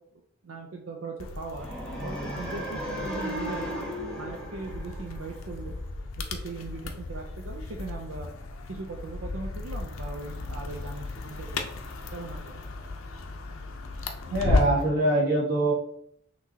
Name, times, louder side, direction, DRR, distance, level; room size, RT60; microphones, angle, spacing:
voice 1, 0.4-1.7 2.0-3.7 4.1-5.7 6.2-8.3 8.7-11.7 12.1-12.5, right 3 dB, 85° right, 2 dB, 0.5 m, -39 dB
sound 1, 1.2-14.9, left 3 dB, 90° left, 0.5 m, -34 dB
sound 2, 1.5-5.7, equal, 5° left, 1.2 m, -36 dB
voice 2, 14.3-15.7, right 1 dB, 45° right, -4 dB, 1.6 m, -24 dB
5.9 x 3.1 x 2.8 m, 0.70 s
head